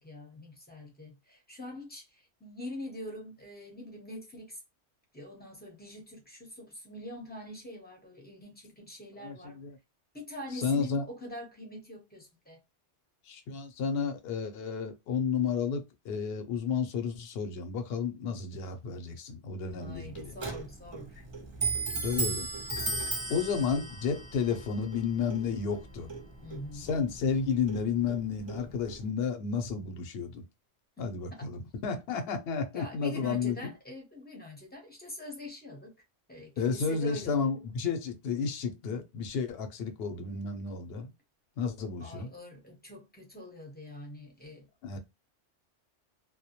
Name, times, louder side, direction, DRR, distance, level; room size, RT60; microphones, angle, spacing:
voice 1, 0.0-4.6 5.1-9.6 10.1-12.6 19.7-21.3 26.4-26.9 32.7-35.9 36.3-37.5 42.0-44.7, left 1 dB, 10° left, 0.6 m, -44 dB
voice 2, 9.2-9.8 10.6-11.0 13.3-20.3 22.0-22.5 23.3-26.1 26.7-30.4 31.0-33.6 36.6-41.1 41.6-42.3 44.8-45.0, left 6 dB, 65° left, 0.7 m, -32 dB
Clock, 19.8-29.1, right 3 dB, 40° right, 0.4 m, -37 dB
2.1 x 2.1 x 2.7 m
omnidirectional pair, 1.2 m